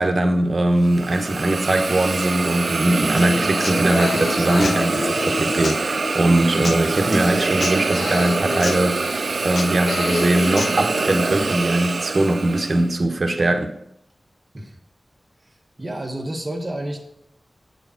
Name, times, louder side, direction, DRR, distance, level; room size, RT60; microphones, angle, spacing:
voice 1, 0.0-13.7, right 1 dB, 55° right, 1.1 m, -21 dB
Hiss, 0.8-12.9, right 3 dB, 75° right, 0.5 m, -25 dB
Human voice / Acoustic guitar, 3.2-11.2, left 3 dB, 70° left, 0.4 m, -29 dB
voice 2, 15.4-17.0, right 1 dB, 30° right, 1.2 m, -30 dB
8.3 x 4.9 x 5.7 m
wide cardioid pair, 65°, 0 cm